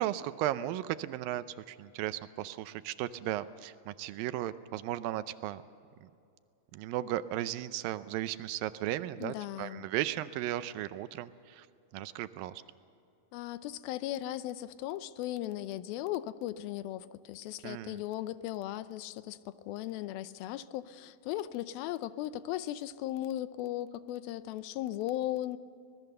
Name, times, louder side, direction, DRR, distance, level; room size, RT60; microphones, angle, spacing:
voice 1, 0.0-5.6 6.7-11.7 11.9-12.6 17.6-18.0, right 13 dB, 80° right, 13 dB, 2.3 m, -35 dB
voice 2, 9.2-9.9 13.3-25.6, left 13 dB, 85° left, 14 dB, 2.5 m, -37 dB
25.5 x 19.5 x 6.7 m, 2.5 s
omnidirectional pair, 4.2 m